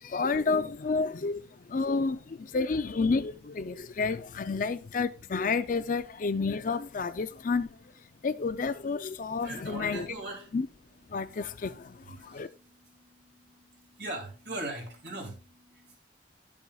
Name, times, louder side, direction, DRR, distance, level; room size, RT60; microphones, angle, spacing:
voice 1, 0.0-1.4 1.7-7.8 8.2-10.1 10.5-10.7 11.1-12.5, left 4 dB, 45° left, 0.4 m, -30 dB
voice 2, 9.4-10.6 11.1-16.0, right 2 dB, 60° right, 2.7 m, -42 dB
11.0 x 6.9 x 2.3 m
head